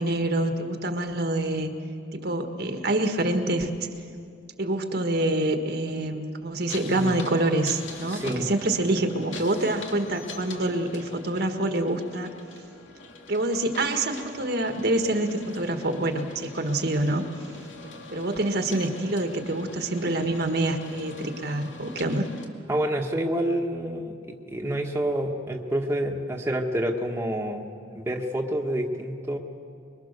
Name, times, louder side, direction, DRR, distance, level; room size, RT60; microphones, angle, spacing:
voice 1, 0.0-1.7 2.1-3.9 4.6-12.3 13.3-17.2 18.1-22.2, right 1 dB, 55° right, 5 dB, 1.6 m, -26 dB
sound 1, 6.7-22.5, left 3 dB, 80° left, 2.3 m, -44 dB
voice 2, 8.1-8.5 22.7-24.1 24.5-27.6 27.9-29.4, right 1 dB, 15° right, 0 dB, 1.5 m, -28 dB
25.0 x 23.0 x 6.7 m, 2.4 s
head